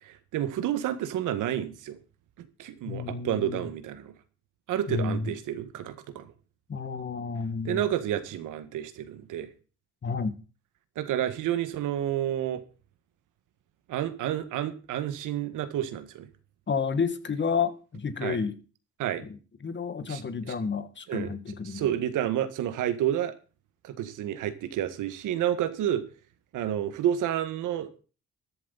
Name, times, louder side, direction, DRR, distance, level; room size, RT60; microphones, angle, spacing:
voice 1, 0.0-2.0 2.4-4.1 4.7-6.3 7.6-9.5 10.9-12.6 13.9-16.3 18.2-18.4 19.0-19.2 20.1-20.2 21.1-21.3 21.6-23.3 23.8-26.0 26.5-28.0, right 11 dB, 85° right, 11 dB, 1.7 m, -30 dB
voice 2, 2.9-3.7 4.9-5.3 6.7-7.8 10.0-10.4 16.7-18.6 19.2-21.9, left 5 dB, 40° left, 11 dB, 1.9 m, -31 dB
14.0 x 11.5 x 4.1 m, 0.35 s
cardioid pair, 90°, 30 cm